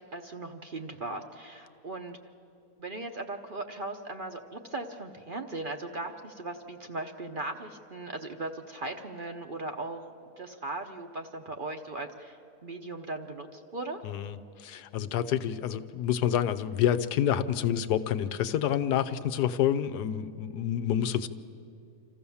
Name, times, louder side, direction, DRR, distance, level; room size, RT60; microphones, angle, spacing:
voice 1, 0.0-2.2 2.8-10.0 10.4-14.0, right 2 dB, 45° right, 5 dB, 0.8 m, -38 dB
voice 2, 14.0-14.4 14.6-21.3, left 10 dB, 85° left, 11 dB, 1.3 m, -28 dB
26.5 x 14.5 x 7.1 m, 2.6 s
omnidirectional pair, 1.7 m